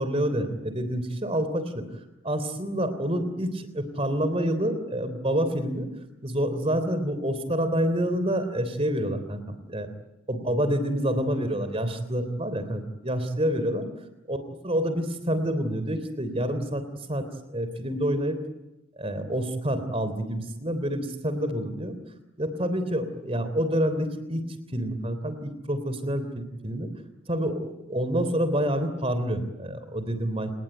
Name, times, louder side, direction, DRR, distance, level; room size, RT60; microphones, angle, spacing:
voice 1, 0.0-1.8 2.2-5.9 6.2-9.9 10.3-13.8 14.3-14.4 14.6-17.3 17.5-18.4 19.0-21.9 22.4-24.4 24.7-26.9 27.3-30.5, equal, 30° right, 11 dB, 3.4 m, -27 dB
29.5 x 19.0 x 9.3 m, 0.94 s
head